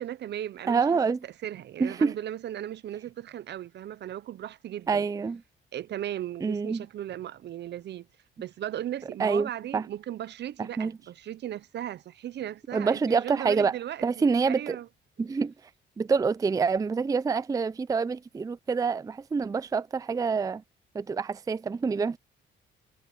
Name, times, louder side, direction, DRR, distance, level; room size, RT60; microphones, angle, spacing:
voice 1, 0.0-5.1 5.7-8.1 8.4-14.9, right 11 dB, 60° right, 0.6 m, -37 dB
voice 2, 0.7-1.2 1.8-2.1 4.9-5.4 6.4-6.8 9.2-9.8 10.8-10.9 12.7-13.7 14.0-14.8 15.2-15.5 16.0-20.6 20.9-22.2, right 5 dB, 20° right, 0.4 m, -26 dB
cardioid pair, 90°, 20 cm